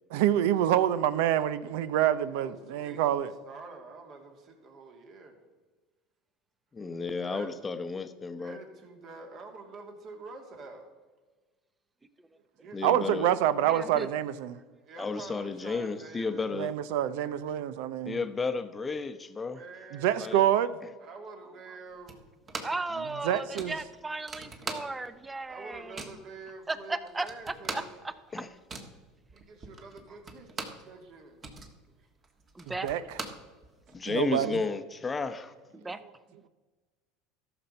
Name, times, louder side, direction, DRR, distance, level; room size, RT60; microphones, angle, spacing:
voice 1, 0.1-3.3 12.8-14.6 16.5-18.2 19.9-20.7 23.2-23.7 32.8-33.0 34.1-34.6, right 11 dB, 75° right, 0.6 m, -26 dB
voice 2, 2.3-3.1 3.5-5.4 7.2-7.5 8.4-10.9 12.6-12.8 14.8-16.6 19.5-20.4 21.0-22.3 25.5-27.9 29.3-30.5 30.9-31.4 31.9-32.1, right 3 dB, 50° right, 2.3 m, -47 dB
voice 3, 6.7-8.6 12.7-13.3 15.0-16.7 18.1-19.6 20.2-20.4 28.3-28.5 33.9-35.5, left 4 dB, 20° left, 0.8 m, -32 dB
voice 4, 13.7-14.1 22.6-26.1 26.7-28.4 32.5-32.9 35.7-36.0, right 3 dB, 15° right, 0.7 m, -36 dB
sound 1, 22.1-22.9 23.2-23.3 23.6-25.2 25.5-26.3 26.8-26.9 27.1-30.9 31.2-34.0, right 3 dB, 30° right, 1.5 m, -41 dB
13.5 x 6.0 x 5.4 m
supercardioid pair, 105°, 0 cm